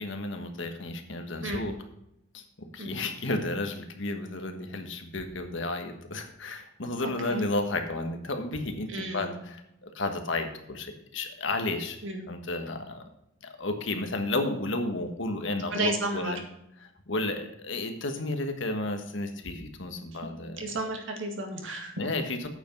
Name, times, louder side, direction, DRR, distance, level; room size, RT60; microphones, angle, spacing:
voice 1, 0.0-1.7 2.3-2.4 2.7-9.6 9.8-12.0 12.3-13.0 13.6-16.4 16.8-20.8 22.0-22.5, left 2 dB, 65° left, 6 dB, 1.4 m, -32 dB
voice 2, 8.9-9.4 12.0-12.3 15.7-16.4 20.6-21.9, right 2 dB, 65° right, 2 dB, 2.0 m, -32 dB
8.9 x 7.0 x 5.3 m, 0.81 s
head